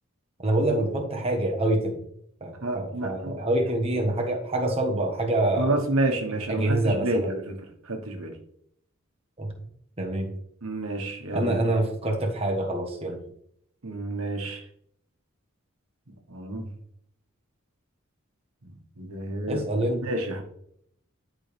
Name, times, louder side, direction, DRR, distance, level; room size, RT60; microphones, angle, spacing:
voice 1, 0.4-2.0 2.4-5.8 6.3-7.3 9.4-9.5 10.0-10.3 11.3-13.2 19.5-20.1, right 1 dB, 30° right, 1 dB, 1.3 m, -26 dB
voice 2, 2.6-3.4 5.5-7.5 7.8-8.3 10.6-11.5 13.8-14.6 16.3-16.6 18.6-19.6 20.0-20.4, right 1 dB, 85° right, 3 dB, 1.4 m, -29 dB
10.5 x 4.9 x 3.4 m, 0.69 s
head